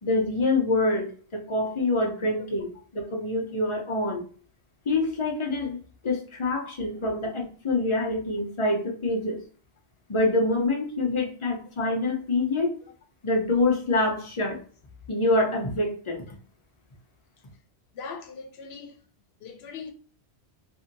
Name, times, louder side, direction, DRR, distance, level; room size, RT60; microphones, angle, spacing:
voice 1, 0.0-4.2 4.9-5.8 6.0-9.4 10.1-12.7 13.2-14.6 15.1-16.2, left 2 dB, 35° left, 0.6 m, -26 dB
voice 2, 17.9-19.0 19.4-19.9, left 5 dB, 75° left, 0.9 m, -40 dB
2.7 x 2.6 x 2.6 m
omnidirectional pair, 1.1 m